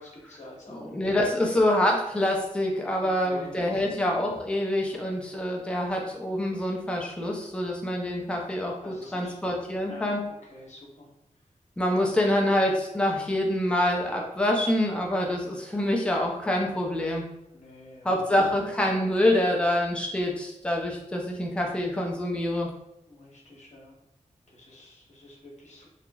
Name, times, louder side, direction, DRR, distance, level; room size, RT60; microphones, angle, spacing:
voice 1, 0.0-1.1 3.0-4.0 8.8-9.3 9.8-10.1 10.4-11.1 11.9-12.2 17.5-18.1 18.4-18.5 23.1-24.0 24.5-25.9, left 1 dB, 60° left, -3 dB, 0.9 m, -47 dB
voice 2, 0.7-10.2 11.8-17.3 18.0-22.7, left 1 dB, 10° left, -1 dB, 0.5 m, -26 dB
2.9 x 2.4 x 2.2 m, 0.85 s
wide cardioid pair, 100°, 13 cm